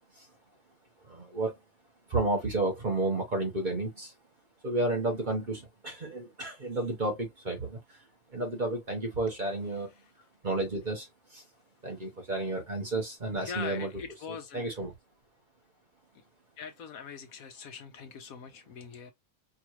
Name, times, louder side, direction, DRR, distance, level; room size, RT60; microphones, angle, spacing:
voice 1, 1.0-1.5 2.1-4.1 4.6-8.0 8.3-9.9 10.4-11.4 11.8-13.9 14.5-14.9, right 2 dB, 35° right, 1.1 m, -31 dB
voice 2, 13.4-14.8 16.6-19.1, left 6 dB, 70° left, 1.2 m, -42 dB
4.7 x 2.4 x 3.0 m
omnidirectional pair, 1.6 m